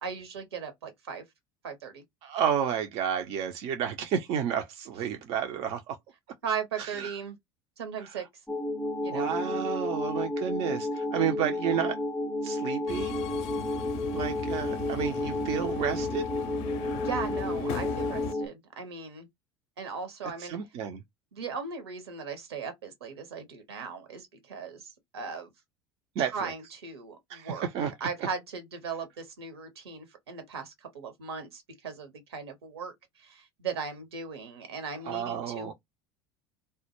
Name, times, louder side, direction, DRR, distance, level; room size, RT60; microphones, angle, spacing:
voice 1, 0.0-1.2 1.6-2.0 6.4-7.4 7.8-8.2 9.0-9.3 17.0-19.3 19.8-20.6 21.3-25.5 26.2-27.7 28.0-32.9 33.2-35.7, right 5 dB, 75° right, 0.9 m, -38 dB
voice 2, 2.2-6.0 6.8-7.1 9.1-12.0 12.4-13.1 14.1-16.2 20.4-21.0 26.2-26.5 27.3-27.9 35.1-35.7, right 8 dB, 50° right, 0.4 m, -31 dB
sound 1, 8.5-18.5, left 1 dB, ahead, 0.5 m, -32 dB
Subway metro underground, 12.9-18.3, left 8 dB, 50° left, 0.4 m, -37 dB
2.1 x 2.0 x 2.9 m
figure-of-eight pair, 75°, 13 cm